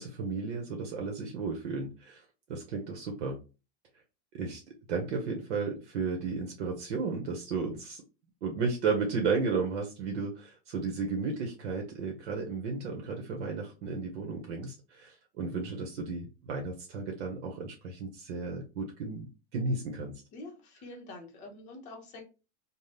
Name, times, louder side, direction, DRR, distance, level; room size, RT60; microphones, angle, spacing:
voice 1, 0.0-3.4 4.3-4.6 4.9-8.0 8.4-20.1, right 4 dB, 85° right, 2 dB, 0.8 m, -34 dB
voice 2, 20.3-22.2, left 2 dB, 20° left, 1 dB, 0.6 m, -46 dB
2.7 x 2.1 x 3.2 m, 0.30 s
supercardioid pair, 165°, 35 cm